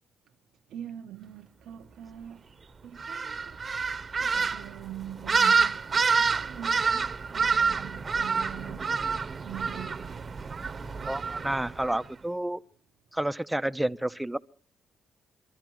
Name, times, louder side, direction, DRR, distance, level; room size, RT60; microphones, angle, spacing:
voice 1, 0.7-2.5 2.8-3.6 4.1-9.0 9.4-10.4, right 11 dB, 80° right, 0.9 m, -43 dB
sound 1, 3.0-12.1, right 5 dB, 35° right, 1.0 m, -28 dB
voice 2, 11.0-12.6 13.1-14.4, right 1 dB, 5° right, 0.7 m, -30 dB
25.0 x 13.5 x 3.1 m
cardioid pair, 90°, 0 cm